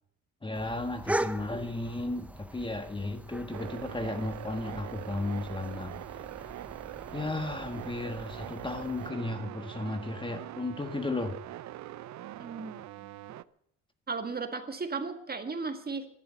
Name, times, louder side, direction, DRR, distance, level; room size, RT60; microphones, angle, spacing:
voice 1, 0.4-6.2 7.1-11.4, left 2 dB, 15° left, 7 dB, 1.5 m, -34 dB
sound 1, 0.5-9.1, right 1 dB, 5° right, 0.6 m, -40 dB
sound 2, 3.5-13.4, right 14 dB, 65° right, 0.6 m, -43 dB
voice 2, 12.4-13.1 14.1-16.1, right 4 dB, 30° right, 7 dB, 1.8 m, -36 dB
12.0 x 12.0 x 9.1 m, 0.74 s
cardioid pair, 90°, 30 cm